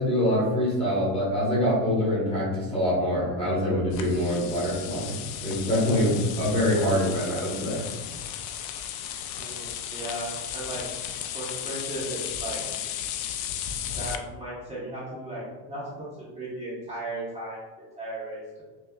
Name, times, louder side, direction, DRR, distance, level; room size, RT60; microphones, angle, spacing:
voice 1, 0.0-5.2 5.4-7.8, left 1 dB, 10° left, -8 dB, 1.0 m, -25 dB
sound 1, 3.9-14.2, left 9 dB, 85° left, 0.5 m, -35 dB
voice 2, 9.3-10.8 11.3-12.6 13.9-18.6, right 1 dB, 15° right, -9 dB, 0.8 m, -36 dB
5.7 x 2.3 x 2.2 m, 1.2 s
cardioid pair, 170°, 47 cm